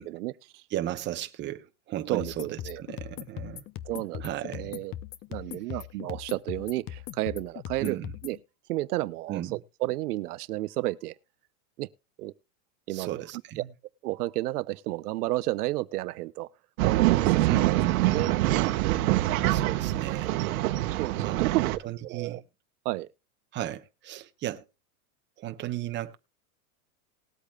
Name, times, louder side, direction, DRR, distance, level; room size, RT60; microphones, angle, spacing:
voice 1, 0.0-0.6 2.1-2.3 2.7-2.8 3.9-4.9 5.3-8.4 8.7-11.1 11.8-11.9 12.2-12.3 12.9-13.1 13.6-13.7 14.0-16.5 16.8-17.8 18.1-18.4 21.0-21.7 22.0-22.4 22.8-23.1, right 17 dB, 80° right, 0.8 m, -31 dB
voice 2, 0.7-3.6 4.2-4.8 7.8-8.1 9.3-9.6 12.9-13.7 17.5-18.3 19.5-20.4 21.2-22.4 23.5-24.6 25.4-26.1, right 13 dB, 25° right, 1.0 m, -35 dB
sound 1, 2.2-8.4, left 12 dB, 25° left, 0.7 m, -40 dB
Male speech man speaking / Chatter / Rattle, 16.8-21.8, right 16 dB, 65° right, 1.2 m, -25 dB
20.0 x 8.3 x 2.3 m
supercardioid pair, 155°, 45 cm